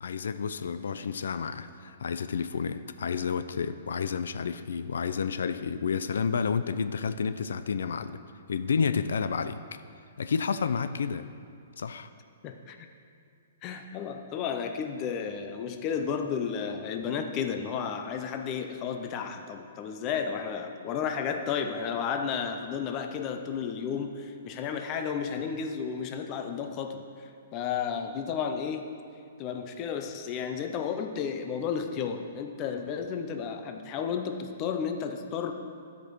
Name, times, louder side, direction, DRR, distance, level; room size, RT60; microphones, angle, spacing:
voice 1, 0.0-8.2 8.5-9.6 10.2-11.3 11.8-12.1, left 6 dB, 80° left, 11 dB, 0.4 m, -30 dB
voice 2, 12.4-12.9 13.6-27.0 27.5-28.9 29.4-35.5, left 7 dB, 20° left, 6 dB, 0.5 m, -32 dB
11.5 x 5.2 x 6.1 m, 2.4 s
hypercardioid pair, 175°, 0 cm